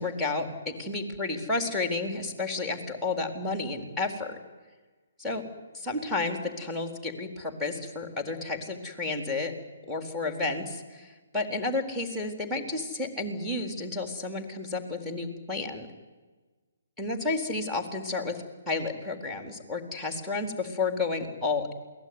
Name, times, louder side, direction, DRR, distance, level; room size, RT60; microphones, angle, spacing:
voice 1, 0.0-4.4 5.2-5.5 5.8-9.5 9.9-15.9 17.0-21.7, left 3 dB, ahead, 5 dB, 4.0 m, -31 dB
28.0 x 19.5 x 9.8 m, 1.3 s
hypercardioid pair, 145°, 0 cm